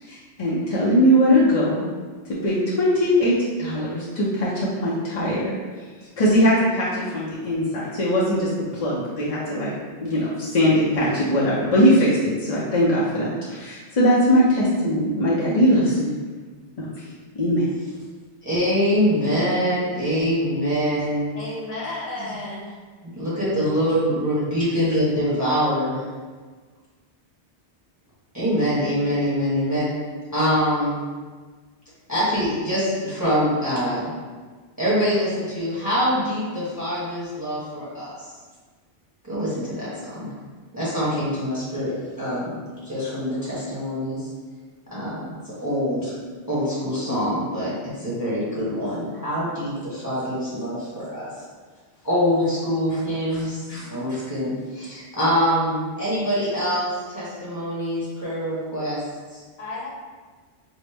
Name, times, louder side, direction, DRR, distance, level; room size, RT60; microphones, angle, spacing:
voice 1, 0.0-1.8 2.4-5.5 6.2-9.7 10.0-16.1 16.8-17.1 17.3-17.6, equal, 45° left, -8 dB, 0.5 m, -20 dB
voice 2, 18.4-21.4 22.2-22.3 23.0-26.0 28.3-29.9 30.3-31.0 32.1-34.1 34.8-38.3 39.2-40.3 40.7-42.6 42.8-44.3 44.9-46.1 46.5-51.4 52.0-59.0 59.3-59.4, equal, 20° right, -10 dB, 1.0 m, -24 dB
voice 3, 21.3-22.7 59.6-59.9, left 2 dB, 65° left, -5 dB, 1.1 m, -32 dB
4.5 x 2.0 x 3.3 m, 1.4 s
omnidirectional pair, 1.2 m